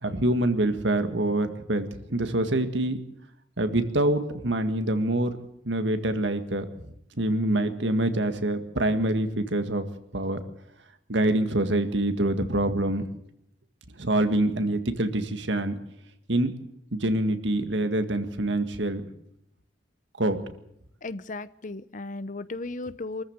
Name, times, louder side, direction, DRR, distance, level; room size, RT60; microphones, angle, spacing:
voice 1, 0.0-3.0 3.6-5.4 5.7-6.7 7.2-9.9 10.1-10.4 11.1-13.1 14.0-15.8 16.3-16.5 16.9-19.1 20.2-20.4, right 1 dB, 85° right, 8 dB, 1.9 m, -25 dB
voice 2, 21.0-23.2, left 2 dB, 45° left, 16 dB, 0.8 m, -35 dB
24.0 x 14.0 x 8.0 m, 0.78 s
head